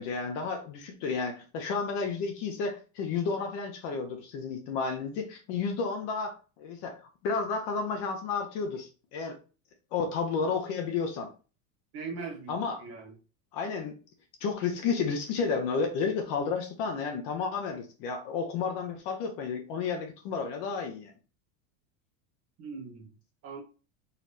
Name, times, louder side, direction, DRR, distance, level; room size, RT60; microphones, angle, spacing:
voice 1, 0.0-7.0 7.2-9.3 9.9-11.3 12.5-12.8 13.5-14.0 14.4-21.1, left 5 dB, 40° left, 0.7 m, -31 dB
voice 2, 11.9-13.1 22.6-23.1 23.4-23.6, right 4 dB, 30° right, 1.3 m, -40 dB
4.1 x 3.1 x 4.0 m
supercardioid pair, 165°, 50 cm